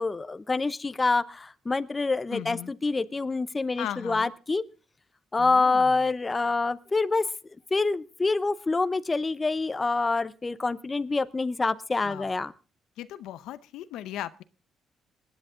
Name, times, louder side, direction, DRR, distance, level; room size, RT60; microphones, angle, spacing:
voice 1, 0.0-4.6 5.3-7.2 7.7-12.5, left 3 dB, 25° left, 15 dB, 0.8 m, -26 dB
voice 2, 2.3-2.7 3.8-4.3 5.4-6.0 12.0-12.3 13.0-14.4, left 12 dB, 90° left, 15 dB, 0.6 m, -37 dB
20.5 x 10.0 x 3.8 m, 0.35 s
cardioid pair, 90°, 0 cm